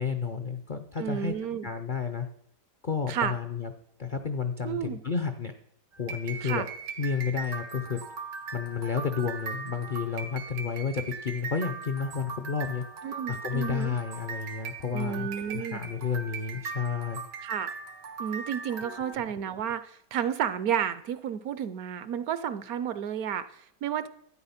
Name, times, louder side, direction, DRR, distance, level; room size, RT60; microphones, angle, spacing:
voice 1, 0.0-1.3 1.6-2.3 2.8-3.7 4.0-5.5 6.0-6.7 7.0-8.0 8.5-12.8 13.3-15.3 15.5-17.3 18.8-19.2, left 6 dB, 60° left, 8 dB, 0.5 m, -31 dB
voice 2, 1.0-1.7 3.1-3.3 4.6-5.0 6.4-6.7 13.0-13.9 14.9-15.8 17.4-17.7 18.2-24.1, right 9 dB, 70° right, 14 dB, 1.0 m, -31 dB
sound 1, 5.9-19.1, right 5 dB, 90° right, 1.9 m, -39 dB
12.5 x 9.2 x 5.7 m, 0.70 s
omnidirectional pair, 1.8 m